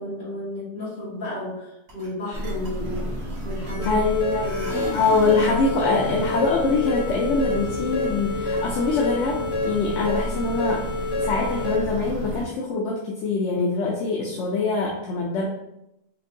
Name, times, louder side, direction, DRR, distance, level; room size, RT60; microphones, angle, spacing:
voice 1, 0.0-1.6 1.9-4.0 4.4-4.8 5.3-5.4, left 1 dB, 40° left, -8 dB, 1.5 m, -33 dB
sound 1, 1.9-2.1 2.3-4.1 4.4-5.5, right 1 dB, 70° right, 1.4 m, -36 dB
sound 2, 2.3-12.5, right 1 dB, 45° right, 0.4 m, -32 dB
sound 3, 3.8-11.8, left 2 dB, 90° left, 1.8 m, -28 dB
voice 2, 3.8-4.5 4.9-10.9 11.2-15.4, left 4 dB, 70° left, -2 dB, 0.9 m, -24 dB
4.3 x 2.6 x 2.7 m, 0.86 s
omnidirectional pair, 1.4 m